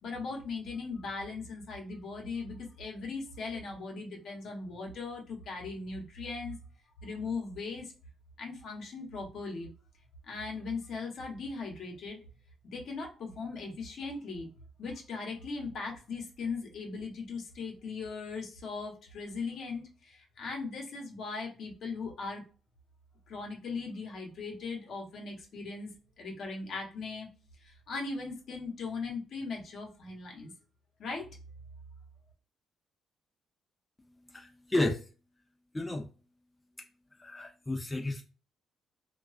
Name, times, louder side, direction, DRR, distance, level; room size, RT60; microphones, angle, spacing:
voice 1, 0.0-6.6 7.0-7.9 8.4-9.7 10.2-12.2 12.6-14.5 14.8-22.4 23.3-27.3 27.6-30.5 31.0-31.3, left 4 dB, 65° left, 0.9 m, -39 dB
voice 2, 34.0-35.0 35.7-36.1 37.2-38.2, left 2 dB, 15° left, 0.5 m, -32 dB
2.3 x 2.3 x 2.3 m
cardioid pair, 90°, 0 cm